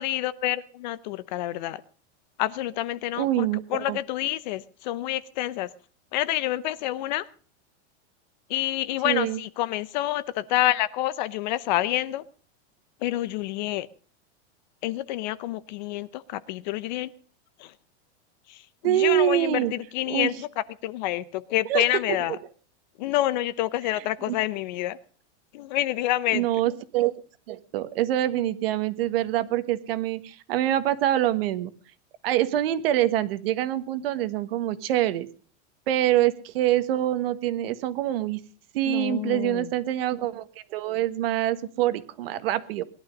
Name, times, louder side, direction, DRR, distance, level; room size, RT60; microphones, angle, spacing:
voice 1, 0.0-1.8 2.4-5.7 6.1-7.3 8.5-12.2 13.0-13.9 14.8-17.1 17.6-17.7 18.5-22.4 23.0-25.0 25.5-26.5 38.9-39.7, left 15 dB, 40° left, 17 dB, 0.7 m, -28 dB
voice 2, 3.2-4.0 9.0-9.4 18.8-19.7 20.1-20.3 21.7-21.8 24.3-24.4 26.3-27.1 27.5-31.7 32.2-35.3 35.9-38.4 38.7-40.5 40.7-42.8, right 13 dB, 55° right, 13 dB, 1.5 m, -25 dB
20.0 x 11.5 x 5.3 m, 0.41 s
supercardioid pair, 175°, 34 cm